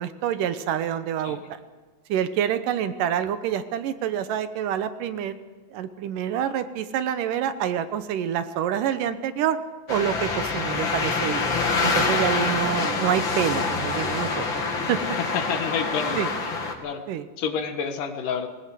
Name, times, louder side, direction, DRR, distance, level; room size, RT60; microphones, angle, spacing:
voice 1, 0.0-1.4 2.1-5.4 5.7-9.6 9.9-11.5 11.8-14.6 14.9-15.0 16.2-16.3 17.1-17.2, right 9 dB, 75° right, 11 dB, 2.5 m, -27 dB
sound 1, 9.9-16.7, left 4 dB, 40° left, 2.3 m, -26 dB
voice 2, 15.2-17.0 17.4-18.5, left 6 dB, 70° left, 7 dB, 2.9 m, -30 dB
19.5 x 19.0 x 7.6 m, 1.4 s
omnidirectional pair, 3.9 m